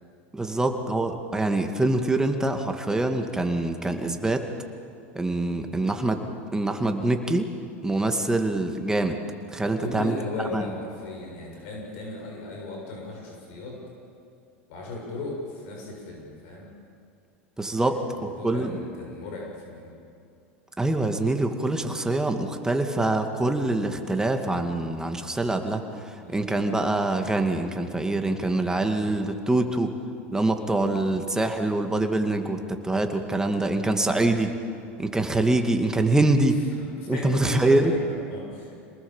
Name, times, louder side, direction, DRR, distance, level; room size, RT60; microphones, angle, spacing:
voice 1, 0.3-4.5 5.1-6.2 6.5-7.5 7.8-9.2 9.5-10.2 10.5-10.7 17.6-18.7 20.8-29.9 30.3-34.5 35.0-36.6 37.1-37.9, right 2 dB, 10° right, 5 dB, 2.3 m, -25 dB
voice 2, 9.7-13.8 14.7-16.7 17.8-19.9 26.2-26.5 36.8-38.7, left 2 dB, 65° left, -1 dB, 7.1 m, -37 dB
27.0 x 19.5 x 7.4 m, 2.5 s
hypercardioid pair, 100°, 7 cm